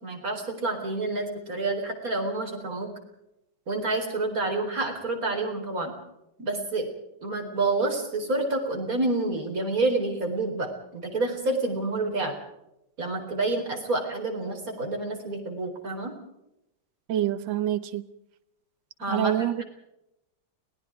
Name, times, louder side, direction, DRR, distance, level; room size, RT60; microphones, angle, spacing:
voice 1, 0.0-2.9 3.7-5.9 6.4-6.9 7.2-12.3 13.0-16.1 19.0-19.6, right 2 dB, 45° right, 4.6 m, -28 dB
voice 2, 17.1-18.0 19.1-19.6, right 11 dB, 75° right, 1.7 m, -26 dB
30.0 x 19.0 x 4.7 m
omnidirectional pair, 2.1 m